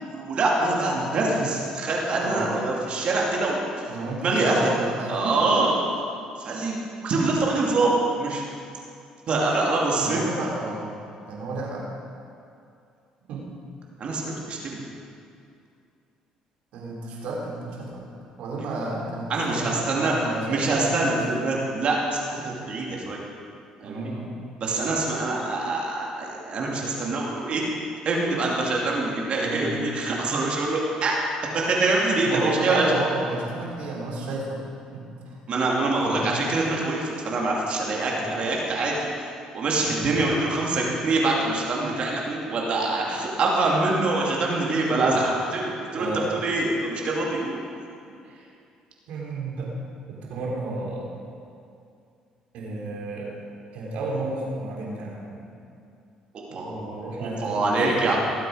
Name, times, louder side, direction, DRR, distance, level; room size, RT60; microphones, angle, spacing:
voice 1, 0.1-3.9 4.2-4.7 5.1-5.7 6.4-6.8 7.0-8.4 9.3-10.2 14.0-14.8 18.6-18.7 19.3-20.1 20.5-23.2 23.8-24.1 24.6-27.6 28.0-31.2 31.5-32.8 35.5-39.1 39.5-47.6 56.3-58.2, right 2 dB, 55° right, -2 dB, 2.6 m, -25 dB
voice 2, 2.2-2.5 3.9-5.7 10.0-11.0 11.3-11.9 13.3-13.5 16.7-18.0 18.4-21.2 23.8-24.3 29.4-29.7 32.2-34.6 34.9-35.4 36.0-36.3 38.1-38.3 39.8-40.1 46.0-46.3 48.2-48.5 49.1-49.7 50.1-51.1 52.5-53.4 53.7-55.5 56.5-58.2, right 2 dB, 75° right, -3 dB, 3.4 m, -32 dB
18.5 x 7.8 x 5.0 m, 2.4 s
supercardioid pair, 80°, 2 cm